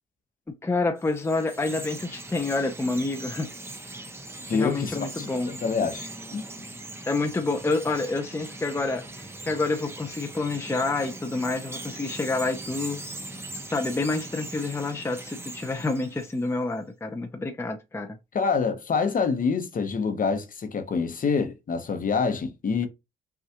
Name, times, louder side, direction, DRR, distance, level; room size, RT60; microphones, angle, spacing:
voice 1, 0.5-3.5 4.5-5.6 7.1-13.0 13.7-18.2, left 3 dB, 15° left, 0.6 m, -28 dB
Chirp tweet, 1.0-16.6, right 2 dB, 10° right, 0.9 m, -40 dB
voice 2, 4.5-6.4 18.3-22.9, left 5 dB, 45° left, 0.9 m, -26 dB
5.7 x 2.4 x 2.9 m
cardioid pair, 90°, 20 cm